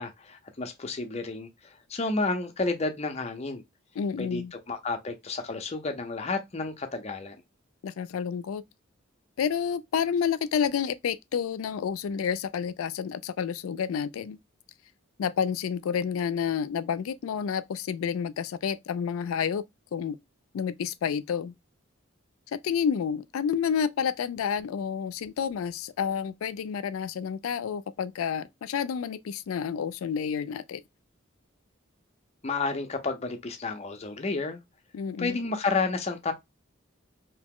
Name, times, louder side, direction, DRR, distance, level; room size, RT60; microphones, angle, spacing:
voice 1, 0.0-1.5 1.9-3.6 4.2-7.4 32.4-34.6 35.2-36.3, left 3 dB, 30° left, 0.5 m, -31 dB
voice 2, 4.0-4.5 7.8-8.6 9.4-14.4 15.2-19.6 19.9-20.2 20.5-21.5 22.5-30.8 34.9-35.4, left 7 dB, 90° left, 0.3 m, -29 dB
2.8 x 2.0 x 3.6 m
head